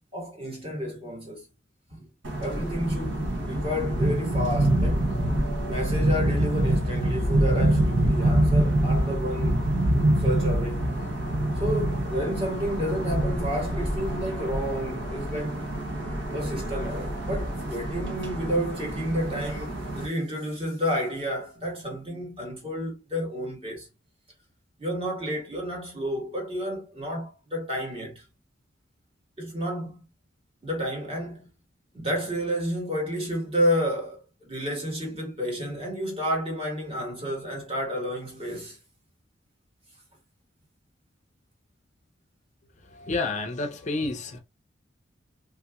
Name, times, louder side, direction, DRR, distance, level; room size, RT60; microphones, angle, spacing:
voice 1, 0.1-1.4 1.9-2.1 2.4-5.0 5.6-9.6 10.2-10.8 11.6-15.6 16.3-23.9 24.8-28.2 29.4-30.0 30.6-31.5 31.9-38.8, equal, 30° right, 1.6 m, -30 dB
sound 1, 2.2-20.1, right 1 dB, 80° right, 0.8 m, -26 dB
voice 2, 42.9-44.4, left 3 dB, 40° left, 0.5 m, -30 dB
3.4 x 2.8 x 2.3 m
head